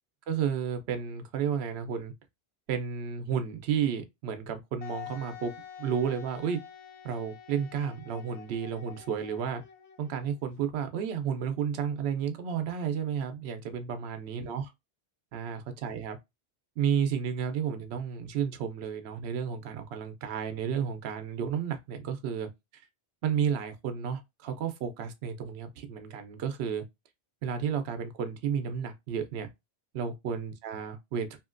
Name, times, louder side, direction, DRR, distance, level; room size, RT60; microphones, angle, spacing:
voice 1, 0.3-2.1 2.7-5.5 5.8-6.6 7.0-9.6 10.0-14.7 15.3-16.2 16.8-22.8 23.2-26.8 27.4-29.5 29.9-31.4, right 7 dB, 75° right, 0.8 m, -32 dB
Wind instrument woodwind instrument, 4.8-10.4, left 9 dB, 85° left, 0.9 m, -47 dB
2.8 x 2.7 x 2.4 m
omnidirectional pair, 1.1 m